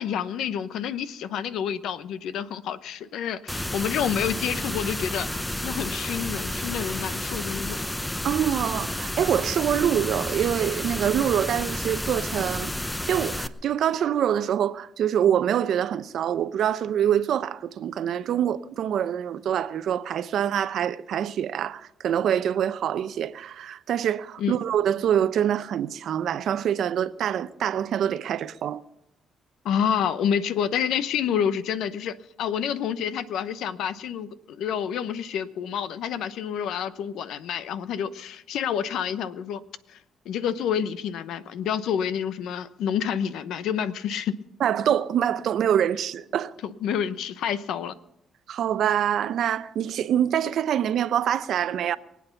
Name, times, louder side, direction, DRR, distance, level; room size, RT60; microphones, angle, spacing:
voice 1, 0.0-5.3 5.6-7.8 24.4-24.6 29.6-39.6 39.9-40.0 40.2-44.3 46.6-47.9, left 8 dB, 80° left, 0.8 m, -28 dB
sound 1, 3.5-13.5, left 1 dB, 10° left, 0.8 m, -31 dB
voice 2, 8.2-12.7 13.1-28.8 44.6-46.5 48.5-52.0, right 9 dB, 70° right, 0.7 m, -25 dB
23.5 x 8.6 x 5.8 m
cardioid pair, 90°, 0 cm